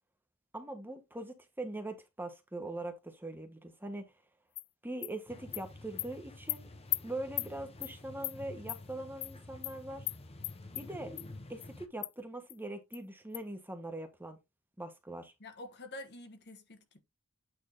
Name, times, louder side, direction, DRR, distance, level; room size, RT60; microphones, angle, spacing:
voice 1, 0.5-4.1 4.8-6.7 7.0-10.1 10.7-11.1 11.5-14.4 14.8-15.3, right 2 dB, 10° right, 1.2 m, -42 dB
Animal, 4.6-4.7 5.0-5.1 5.5-5.6 6.0-6.1 6.5-6.6 6.9-7.0 7.4-7.5 7.8-7.9 8.2-8.4 8.7-8.8 9.2-9.3 9.6-9.7 10.1-10.2 10.4-10.8 11.2-11.3 11.6-11.7 12.0-12.1 12.5-12.6 12.9-13.0 13.3-13.4, left 19 dB, 85° left, 0.4 m, -35 dB
sound 1, 5.3-11.9, left 2 dB, 25° left, 0.9 m, -50 dB
voice 2, 15.4-17.0, left 1 dB, 50° left, 1.3 m, -47 dB
8.9 x 3.5 x 3.9 m
head